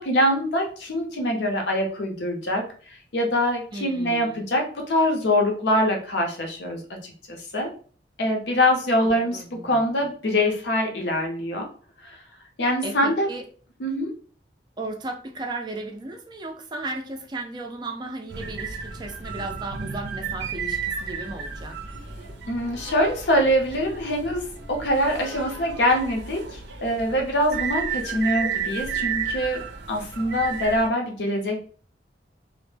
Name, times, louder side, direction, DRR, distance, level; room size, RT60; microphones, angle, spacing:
voice 1, 0.0-2.7 3.1-7.7 8.2-11.6 12.0-12.2 12.6-13.3 13.8-14.1 22.5-31.6, equal, 75° left, 2 dB, 0.6 m, -24 dB
voice 2, 3.7-4.4 9.0-10.0 12.8-13.4 14.8-21.8, right 2 dB, 25° right, 3 dB, 0.3 m, -35 dB
sound 1, 18.3-30.9, right 6 dB, 85° right, 0.5 m, -33 dB
2.1 x 2.0 x 3.1 m, 0.42 s
head